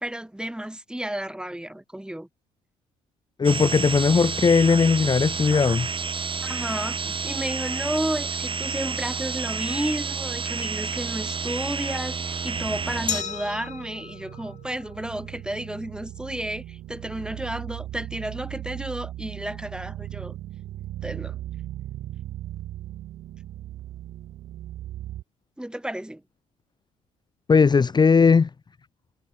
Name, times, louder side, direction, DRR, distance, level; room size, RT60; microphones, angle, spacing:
voice 1, 0.0-2.3 6.4-20.4 21.0-21.4 25.6-26.2, right 1 dB, 5° right, 1.9 m, -32 dB
voice 2, 3.4-5.9 27.5-28.5, left 5 dB, 30° left, 0.9 m, -18 dB
sound 1, 3.4-13.2, right 5 dB, 35° right, 5.9 m, -30 dB
sound 2, 12.5-25.2, right 13 dB, 65° right, 4.3 m, -38 dB
Glass, 13.1-15.8, left 8 dB, 50° left, 7.6 m, -35 dB
supercardioid pair, 65°, 16 cm